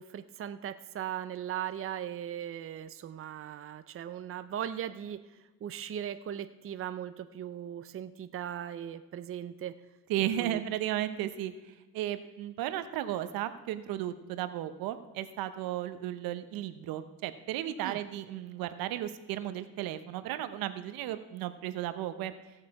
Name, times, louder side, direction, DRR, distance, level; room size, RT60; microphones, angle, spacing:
voice 1, 0.0-9.7 10.4-10.6 17.8-18.0, right 10 dB, 40° right, 11 dB, 0.7 m, -38 dB
voice 2, 10.1-11.5 11.9-22.3, right 12 dB, 80° right, 11 dB, 0.9 m, -34 dB
17.0 x 6.7 x 4.8 m, 1.1 s
cardioid pair, 95°, 35 cm